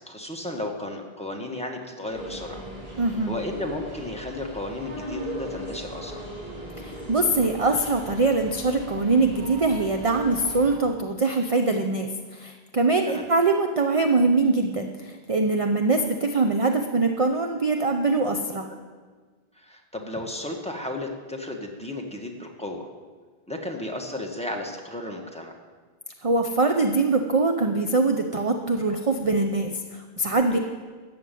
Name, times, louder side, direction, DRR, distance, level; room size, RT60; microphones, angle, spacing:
voice 1, 0.0-2.6 3.3-6.2 13.1-13.2 18.7-18.8 19.5-22.9 23.5-25.6 30.5-30.6, left 1 dB, 5° left, 1 dB, 1.5 m, -34 dB
sound 1, 2.1-10.8, equal, 75° right, 3.6 m, -38 dB
voice 2, 3.0-3.3 6.8-18.7 26.2-30.6, right 3 dB, 35° right, 4 dB, 0.7 m, -23 dB
14.0 x 7.0 x 9.2 m, 1.5 s
omnidirectional pair, 1.0 m